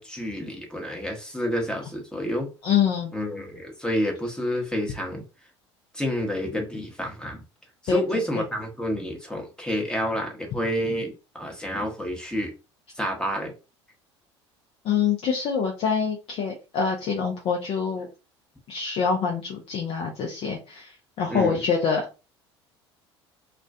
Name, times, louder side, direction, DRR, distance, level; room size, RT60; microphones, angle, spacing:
voice 1, 0.0-2.5 3.1-5.2 5.9-7.4 7.8-12.5 13.0-13.5 21.3-21.6, equal, 5° left, 1 dB, 0.9 m, -29 dB
voice 2, 2.6-3.1 7.9-8.4 14.8-18.1 18.7-22.0, left 6 dB, 45° left, 1 dB, 0.6 m, -25 dB
2.4 x 2.2 x 2.4 m, 0.31 s
figure-of-eight pair, 65°, 14 cm